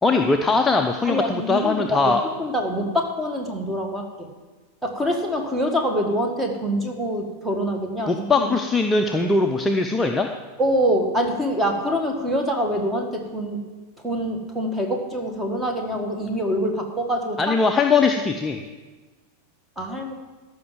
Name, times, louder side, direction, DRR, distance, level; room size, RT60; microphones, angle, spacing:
voice 1, 0.0-2.2 8.1-10.3 17.4-18.6, left 3 dB, 10° left, 4 dB, 0.6 m, -20 dB
voice 2, 1.0-4.3 4.8-8.5 10.6-13.6 14.0-17.6 19.8-20.1, equal, 5° right, 2 dB, 1.7 m, -25 dB
13.5 x 5.9 x 7.3 m, 1.3 s
figure-of-eight pair, 90°, 0 cm